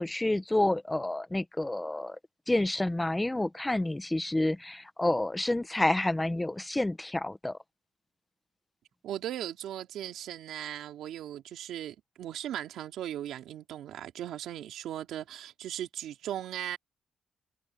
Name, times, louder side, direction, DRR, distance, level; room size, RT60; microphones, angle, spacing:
voice 1, 0.0-2.2 2.5-7.6, left 1 dB, 15° left, 1.2 m, -29 dB
voice 2, 9.0-16.8, right 11 dB, 85° right, 3.2 m, -38 dB
cardioid pair, 80°, 0 cm